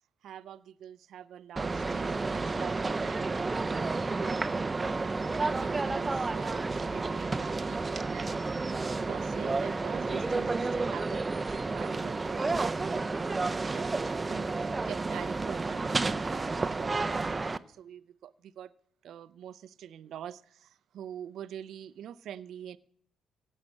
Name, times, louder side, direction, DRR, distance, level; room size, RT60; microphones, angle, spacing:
voice 1, 0.2-4.5 5.3-13.1 13.6-18.7 19.0-22.8, right 10 dB, 70° right, 15 dB, 0.5 m, -45 dB
sound 1, 1.6-17.6, right 3 dB, 25° right, 0.5 m, -31 dB
16.0 x 6.5 x 8.7 m, 0.63 s
cardioid pair, 90°, 0 cm